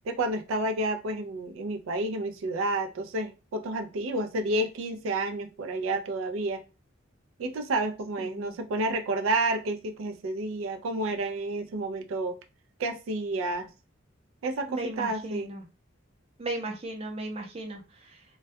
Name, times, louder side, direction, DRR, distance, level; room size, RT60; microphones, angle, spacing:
voice 1, 0.0-6.6 7.4-12.4 12.8-13.7 14.4-15.5, right 2 dB, 90° right, 0.4 m, -30 dB
voice 2, 8.2-8.6 14.7-15.6 16.4-18.2, right 2 dB, 30° right, 0.5 m, -36 dB
2.2 x 2.2 x 2.6 m
head